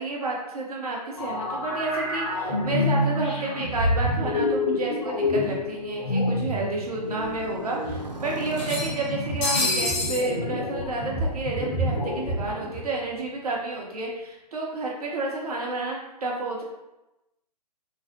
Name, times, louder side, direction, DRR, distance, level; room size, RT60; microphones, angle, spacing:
voice 1, 0.0-16.6, right 2 dB, 60° right, -2 dB, 0.8 m, -30 dB
sound 1, 1.2-13.0, left 1 dB, 45° left, 1.0 m, -28 dB
Motorcycle, 4.6-14.1, right 1 dB, 90° right, 0.5 m, -41 dB
sound 2, 5.1-5.2 5.5-5.6 6.7-6.8 7.1-7.2 8.5-10.3, left 2 dB, 20° left, 0.5 m, -28 dB
3.0 x 2.0 x 2.8 m, 0.96 s
figure-of-eight pair, 125°, 21 cm